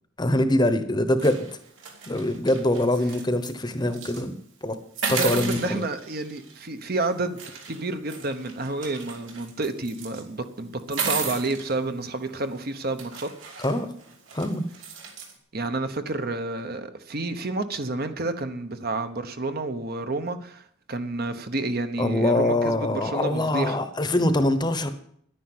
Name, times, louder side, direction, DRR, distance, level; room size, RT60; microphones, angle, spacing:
voice 1, 0.2-1.5 2.1-4.8 5.1-5.9 13.6-13.9 14.3-14.6 22.0-24.9, left 1 dB, 20° left, 10 dB, 1.0 m, -24 dB
sound 1, 1.2-3.5 3.9-4.2 5.0-6.7 7.4-10.2 10.8-11.7 12.5-12.6 13.0-15.3, right 5 dB, 65° right, 2.8 m, -35 dB
voice 2, 5.2-7.4 7.7-13.3 15.5-20.6 20.9-23.8, right 2 dB, 50° right, 9 dB, 1.0 m, -30 dB
10.5 x 10.0 x 7.9 m, 0.66 s
head